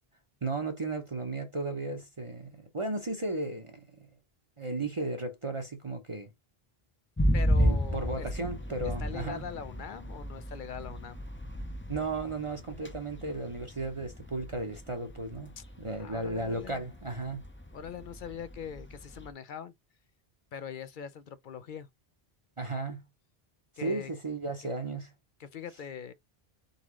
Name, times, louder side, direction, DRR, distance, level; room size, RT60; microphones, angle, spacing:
voice 1, 0.4-3.8 4.6-6.3 7.5-9.4 11.9-15.5 15.8-17.4 22.6-23.0 23.8-25.1, right 2 dB, 35° right, 0.8 m, -35 dB
sound 1, 7.2-19.3, equal, 15° left, 0.6 m, -33 dB
voice 2, 7.3-8.3 9.0-11.2 15.6-15.7 16.0-16.9 17.7-19.7 20.5-21.9 23.8-24.1 25.4-26.1, left 7 dB, 60° left, 0.7 m, -42 dB
4.1 x 3.6 x 3.0 m
omnidirectional pair, 1.0 m